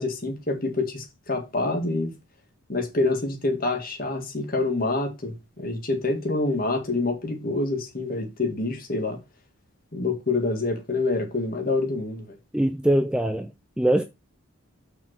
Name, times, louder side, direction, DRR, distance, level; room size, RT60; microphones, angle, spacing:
voice 1, 0.0-2.1 2.7-9.2 9.9-12.4, left 2 dB, 45° left, 1.9 m, -27 dB
voice 2, 12.5-13.5 13.8-14.0, right 1 dB, 5° right, 0.4 m, -22 dB
6.0 x 4.6 x 6.1 m
head